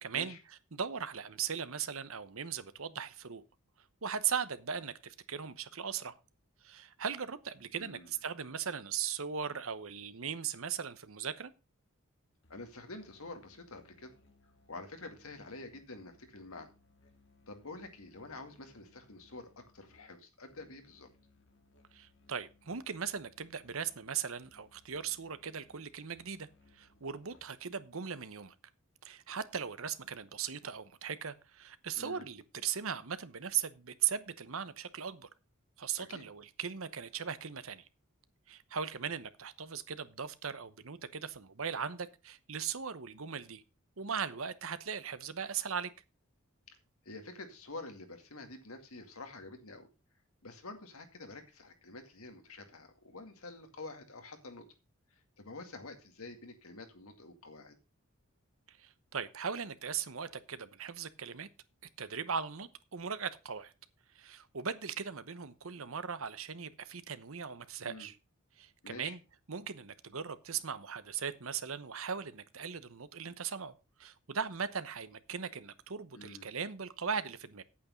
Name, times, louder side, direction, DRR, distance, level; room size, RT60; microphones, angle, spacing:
voice 1, 0.0-3.4 4.0-6.1 6.6-11.5 21.9-26.5 26.7-28.5 29.0-35.3 35.8-37.8 38.5-43.6 44.0-45.9 58.7-61.5 62.0-63.7 64.1-68.2 68.6-69.2 69.5-73.7 74.0-77.6, right 7 dB, 70° right, 0.9 m, -38 dB
voice 2, 7.8-8.1 12.5-14.1 14.7-16.7 17.5-21.1 32.0-32.3 36.0-36.3 46.7-46.8 47.1-49.9 50.4-54.6 55.4-57.8 67.8-68.1 68.8-69.2 76.1-76.5, left 2 dB, 80° left, 2.2 m, -48 dB
Musical instrument, 12.4-27.7, left 2 dB, 55° left, 1.8 m, -66 dB
8.7 x 8.6 x 5.1 m
head